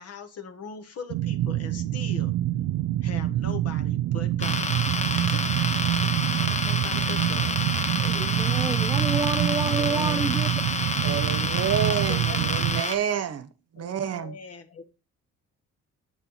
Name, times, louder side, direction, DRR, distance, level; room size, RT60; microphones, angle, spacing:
voice 1, 0.0-2.4 3.0-6.1 6.4-7.6 11.8-12.8 13.8-14.8, left 6 dB, 50° left, 1.2 m, -42 dB
sound 1, 1.1-12.8, right 14 dB, 75° right, 0.5 m, -26 dB
sound 2, 4.4-13.0, left 4 dB, 20° left, 0.7 m, -29 dB
voice 2, 8.0-10.7, right 4 dB, 15° right, 0.4 m, -29 dB
voice 3, 9.7-10.3 11.0-13.5 13.7-14.4, right 9 dB, 55° right, 0.9 m, -29 dB
8.0 x 4.3 x 4.0 m
cardioid pair, 115°, 31 cm